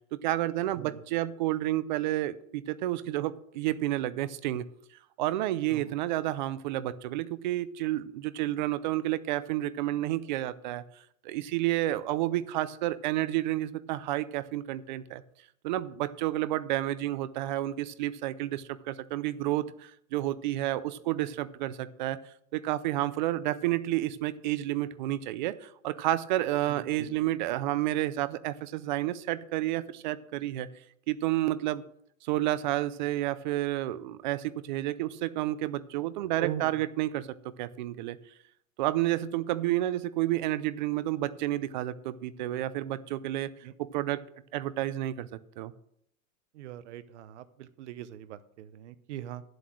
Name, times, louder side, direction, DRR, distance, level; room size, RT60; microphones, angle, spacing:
voice 1, 0.2-4.7 5.2-10.8 11.2-15.2 15.6-22.2 22.5-30.7 31.1-31.8 32.2-37.3 37.6-38.2 38.8-43.5 43.8-44.2 44.5-45.3 45.6-45.7, right 14 dB, 35° right, 15 dB, 0.5 m, -30 dB
voice 2, 26.7-27.2 36.4-36.7 43.6-43.7 46.5-49.4, right 11 dB, 60° right, 14 dB, 0.9 m, -41 dB
10.5 x 7.8 x 6.1 m, 0.72 s
supercardioid pair, 165°, 40 cm